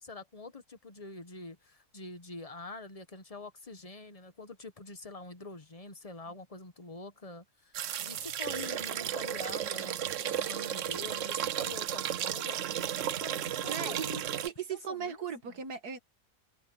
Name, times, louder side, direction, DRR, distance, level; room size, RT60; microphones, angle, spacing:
voice 1, 0.0-12.6 13.2-14.2 14.7-15.5, left 3 dB, 25° left, 1.2 m, -46 dB
sound 1, 7.7-14.5, right 10 dB, 60° right, 1.0 m, -34 dB
voice 2, 13.6-14.1 14.4-16.0, right 7 dB, 80° right, 2.2 m, -37 dB
open air
omnidirectional pair, 1.7 m